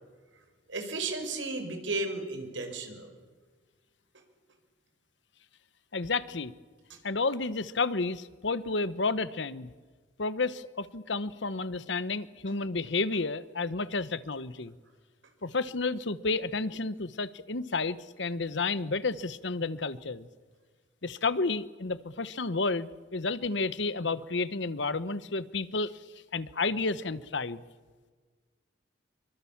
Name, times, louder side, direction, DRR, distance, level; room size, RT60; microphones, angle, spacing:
voice 1, 0.7-3.1, right 3 dB, 80° right, 5 dB, 5.1 m, -34 dB
voice 2, 5.9-6.5 7.0-9.7 10.2-14.7 15.4-20.3 21.0-26.0 26.3-27.6, left 3 dB, 70° left, 15 dB, 1.0 m, -31 dB
25.5 x 24.0 x 7.3 m, 1.4 s
head